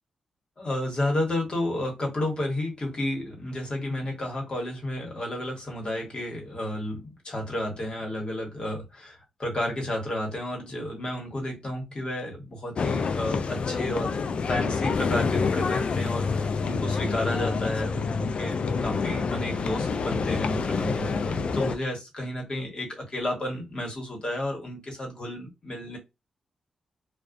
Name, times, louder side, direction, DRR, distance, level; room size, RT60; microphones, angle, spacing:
voice 1, 0.6-26.0, left 1 dB, 45° left, 1.3 m, -32 dB
sound 1, 12.8-21.8, left 4 dB, 60° left, 0.3 m, -27 dB
2.3 x 2.1 x 2.5 m
cardioid pair, 60°, 2 cm